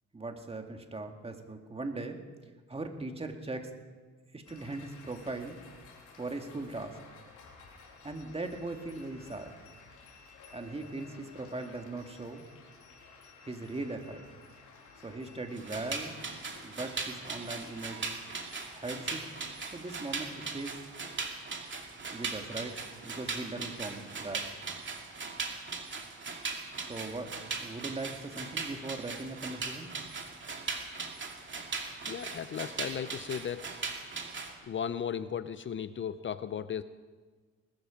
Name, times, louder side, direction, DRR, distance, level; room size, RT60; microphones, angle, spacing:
voice 1, 0.1-2.2 2.7-3.7 4.3-5.6 6.2-7.0 7.8-9.5 10.5-12.4 13.4-14.3 15.0-16.2 16.6-18.1 18.7-19.2 19.7-20.8 22.1-22.7 23.0-24.4 26.8-27.3 27.6-29.9, right 2 dB, 20° right, 4 dB, 2.0 m, -39 dB
sound 1, 4.4-20.6, left 4 dB, 85° left, 3.6 m, -54 dB
sound 2, 15.5-34.5, right 4 dB, 40° right, 2.4 m, -39 dB
voice 2, 32.1-33.6 34.6-36.8, left 8 dB, 40° left, 14 dB, 0.6 m, -35 dB
20.0 x 13.0 x 5.2 m, 1.5 s
cardioid pair, 90°, 30 cm